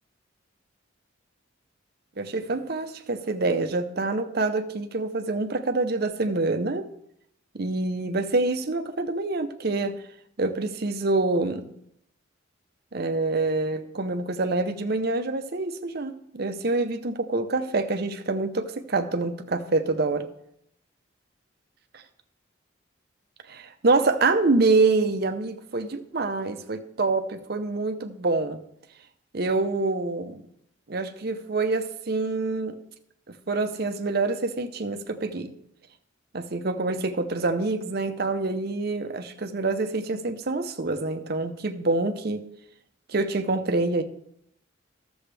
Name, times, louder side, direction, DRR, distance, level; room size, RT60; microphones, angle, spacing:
voice 1, 2.2-6.9 7.5-10.0 10.4-11.7 12.9-20.3 23.5-28.6 29.3-30.4 30.9-32.8 33.3-35.5 36.3-42.4 43.1-44.0, right 3 dB, 50° right, 8 dB, 0.7 m, -26 dB
13.0 x 7.1 x 3.4 m, 0.74 s
head